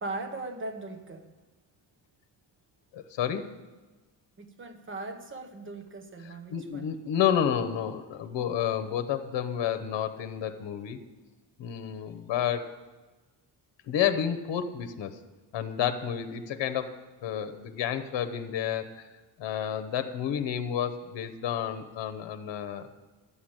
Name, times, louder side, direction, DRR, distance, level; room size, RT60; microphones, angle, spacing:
voice 1, 0.0-1.3 4.4-6.9, right 2 dB, 25° right, 1.0 m, -39 dB
voice 2, 2.9-3.5 6.2-11.0 11.6-12.7 13.9-15.2 15.5-19.1 19.4-22.9, left 9 dB, 70° left, 1.0 m, -30 dB
11.5 x 7.1 x 8.9 m
cardioid pair, 170°, 45 cm